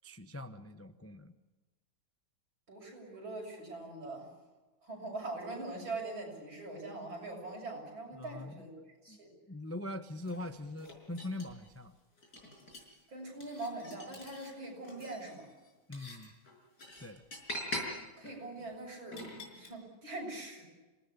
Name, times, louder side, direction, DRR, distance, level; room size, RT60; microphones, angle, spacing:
voice 1, 0.0-1.3 8.1-8.6 9.1-9.2 9.5-12.0 15.9-16.3 17.0-17.2, left 2 dB, 20° left, 8 dB, 0.3 m, -42 dB
voice 2, 2.7-4.3 4.8-8.7 9.0-9.3 13.1-15.5 18.2-19.2 19.5-20.6, right 2 dB, 80° right, 0 dB, 7.8 m, -42 dB
sound 1, 10.2-11.7 12.2-13.0 13.4-14.5 14.8-19.7, equal, 50° left, 6.0 m, -44 dB
27.5 x 18.5 x 8.5 m, 1.2 s
omnidirectional pair, 2.1 m